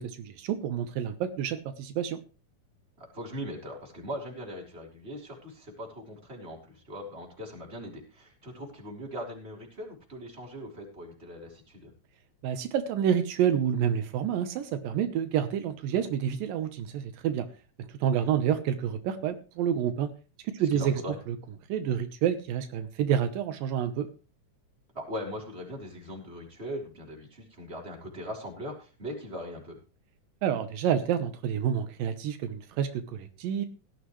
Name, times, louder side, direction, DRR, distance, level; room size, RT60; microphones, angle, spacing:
voice 1, 0.0-2.2 12.4-17.5 18.0-20.1 20.4-20.9 21.3-21.4 21.7-24.1 30.4-33.7, right 9 dB, 85° right, 8 dB, 2.8 m, -28 dB
voice 2, 3.0-11.9 20.6-21.2 24.9-29.8, equal, 20° right, -1 dB, 4.1 m, -40 dB
17.5 x 12.5 x 3.2 m, 0.33 s
omnidirectional pair, 3.9 m